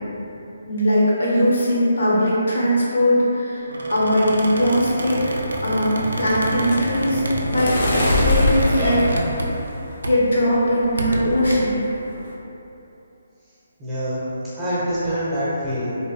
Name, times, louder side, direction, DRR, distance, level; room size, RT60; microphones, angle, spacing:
voice 1, 0.7-5.2 5.6-9.1 10.0-11.8, equal, 80° left, -7 dB, 0.9 m, -20 dB
Squeak, 3.7-9.8 10.0-10.3 10.8-11.5, right 1 dB, 90° right, 0.3 m, -28 dB
sound 1, 5.6-10.0 10.4-10.8 11.1-11.4 11.7-12.3, left 2 dB, 60° left, 0.6 m, -24 dB
voice 2, 13.8-16.0, equal, 10° right, -12 dB, 0.7 m, -25 dB
2.9 x 2.1 x 3.1 m, 2.9 s
hypercardioid pair, 155°, 0 cm